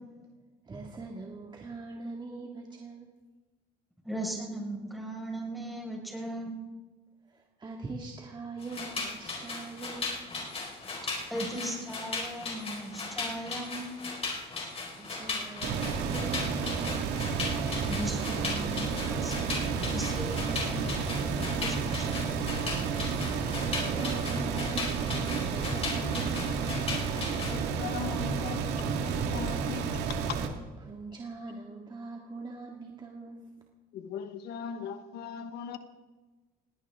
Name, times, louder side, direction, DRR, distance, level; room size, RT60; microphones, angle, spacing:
voice 1, 0.6-3.1 7.2-10.2 14.9-17.1 23.2-26.4 30.8-33.4, right 3 dB, 25° right, 2.0 m, -42 dB
voice 2, 4.0-6.6 11.3-13.9 17.9-19.4 19.9-21.0 21.6-22.1, right 1 dB, ahead, 5.3 m, -37 dB
sound 1, 8.6-27.6, left 3 dB, 35° left, 4.6 m, -37 dB
sound 2, 15.6-30.5, right 5 dB, 90° right, 1.9 m, -31 dB
voice 3, 27.5-30.0 30.3-30.4 33.9-35.8, left 8 dB, 75° left, 1.2 m, -39 dB
20.0 x 17.5 x 3.7 m
cardioid pair, 110°, 17 cm